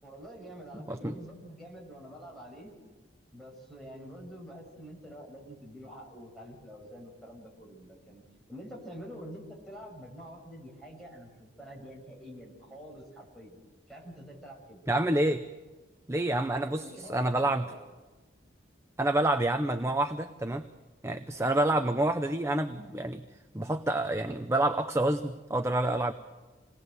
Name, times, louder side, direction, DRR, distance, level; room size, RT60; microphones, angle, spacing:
voice 1, 0.0-2.7 3.3-8.2 8.5-13.6 13.9-14.8 16.6-17.8, equal, ahead, -2 dB, 6.5 m, -47 dB
voice 2, 14.9-15.4 16.1-16.8 17.1-17.7 19.0-20.7 21.0-23.2 23.5-26.1, right 1 dB, 15° right, 8 dB, 0.7 m, -28 dB
28.0 x 19.5 x 8.0 m, 1.2 s
head